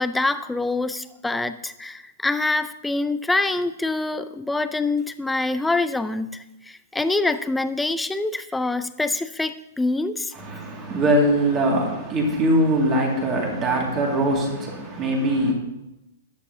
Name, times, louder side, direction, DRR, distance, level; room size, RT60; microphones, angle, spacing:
voice 1, 0.0-10.9, left 2 dB, 5° left, 0.3 m, -25 dB
voice 2, 10.4-15.5, right 1 dB, 20° right, 2.1 m, -22 dB
13.5 x 9.8 x 2.7 m
hypercardioid pair, 165°, 0 cm